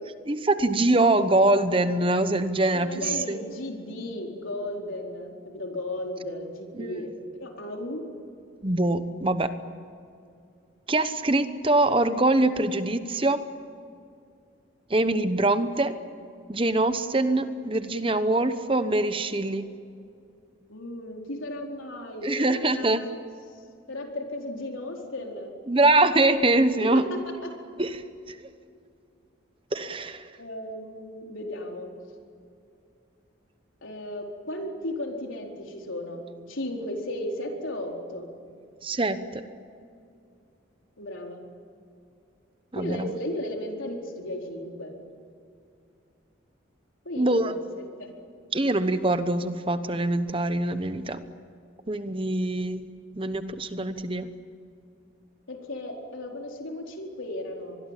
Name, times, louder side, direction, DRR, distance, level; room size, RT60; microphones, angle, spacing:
voice 1, 0.3-3.4 6.7-6.9 8.6-9.5 10.9-13.4 14.9-15.9 16.5-19.6 22.2-23.1 25.7-27.1 27.8-28.0 28.3-28.4 29.7-30.3 38.8-39.4 42.7-43.1 47.2-47.6 48.5-51.2 51.9-52.8 53.1-54.3, right 2 dB, 25° right, 11 dB, 1.0 m, -24 dB
voice 2, 2.7-7.1 7.4-8.0 20.7-23.1 23.9-25.5 26.8-27.5 30.4-31.9 33.8-38.3 41.0-41.4 42.7-44.9 47.0-48.1 55.5-57.8, left 1 dB, 85° left, 1 dB, 4.3 m, -35 dB
25.0 x 21.5 x 9.1 m, 2.4 s
head